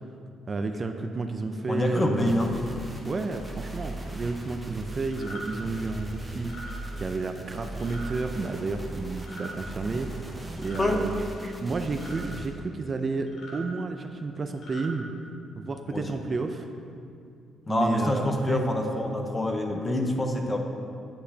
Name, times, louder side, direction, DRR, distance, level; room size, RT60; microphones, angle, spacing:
voice 1, 0.5-2.5 3.0-10.1 10.6-11.2 11.4-15.1 15.6-16.6 17.7-18.7, right 3 dB, 35° right, 6 dB, 0.4 m, -31 dB
voice 2, 1.7-2.5 10.8-11.1 15.9-16.2 17.7-20.6, left 1 dB, 25° left, 3 dB, 0.8 m, -26 dB
sound 1, 2.2-12.5, right 2 dB, 10° right, 1.3 m, -39 dB
sound 2, 5.1-5.4 6.4-6.7 7.8-8.1 9.2-9.5 10.6-10.9 11.9-12.2 13.3-13.6 14.5-14.9, equal, 75° left, 1.5 m, -42 dB
8.6 x 7.9 x 2.8 m, 2.5 s
cardioid pair, 90°, 0 cm